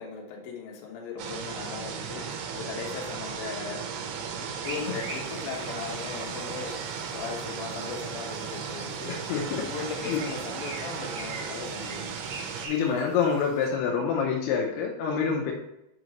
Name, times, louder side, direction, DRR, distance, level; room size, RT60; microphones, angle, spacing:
voice 1, 0.0-3.9 4.3-6.8 7.1-9.1 9.7-12.2, left 5 dB, 70° left, -2 dB, 2.9 m, -38 dB
sound 1, 1.2-12.7, right 6 dB, 90° right, 2.8 m, -36 dB
sound 2, 4.6-13.7, right 2 dB, 60° right, 3.0 m, -44 dB
voice 2, 9.1-9.6 10.1-10.2 12.6-15.5, left 6 dB, 90° left, 0 dB, 2.8 m, -27 dB
6.6 x 5.2 x 3.0 m, 0.84 s
omnidirectional pair, 4.6 m